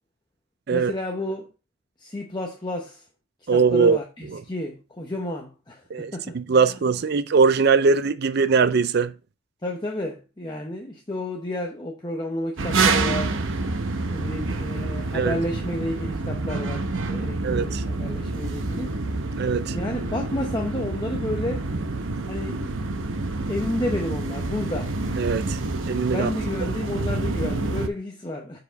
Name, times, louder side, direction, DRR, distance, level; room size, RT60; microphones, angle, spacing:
voice 1, 0.7-1.5 2.0-3.0 3.5-6.7 9.6-13.4 14.1-19.0 19.7-21.7 22.3-23.1 23.5-24.9 26.1-28.6, left 1 dB, 20° left, 0.8 m, -31 dB
voice 2, 3.5-4.0 4.3-4.4 5.9-9.1 15.1-15.4 17.4-17.8 19.4-19.8 25.2-25.6 25.9-26.3, right 5 dB, 50° right, 0.4 m, -21 dB
sound 1, 12.6-27.9, right 3 dB, 65° right, 0.9 m, -27 dB
7.0 x 4.8 x 4.0 m
head